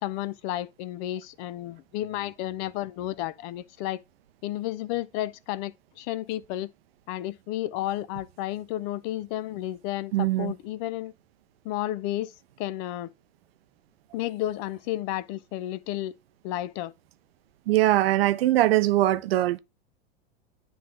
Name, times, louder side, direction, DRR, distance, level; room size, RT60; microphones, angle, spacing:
voice 1, 0.0-4.0 4.4-6.7 7.1-11.1 11.6-12.3 12.6-13.1 14.1-16.2 16.4-16.9, left 14 dB, 40° left, 0.4 m, -32 dB
voice 2, 10.1-10.5 17.7-19.6, right 15 dB, 70° right, 0.6 m, -22 dB
9.3 x 3.1 x 3.7 m
hypercardioid pair, 100°, 32 cm